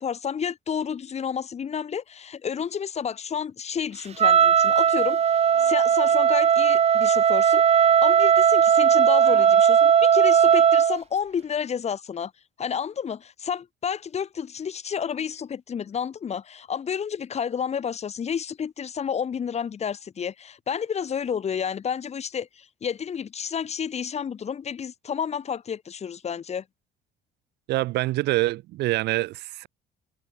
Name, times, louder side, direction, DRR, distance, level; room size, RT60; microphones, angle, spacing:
voice 1, 0.0-12.3 12.6-26.6, left 7 dB, 40° left, 3.3 m, -30 dB
Wind instrument woodwind instrument, 4.2-11.0, right 8 dB, 40° right, 0.9 m, -18 dB
voice 2, 27.7-29.7, right 17 dB, 80° right, 1.7 m, -25 dB
cardioid pair, 110°, 17 cm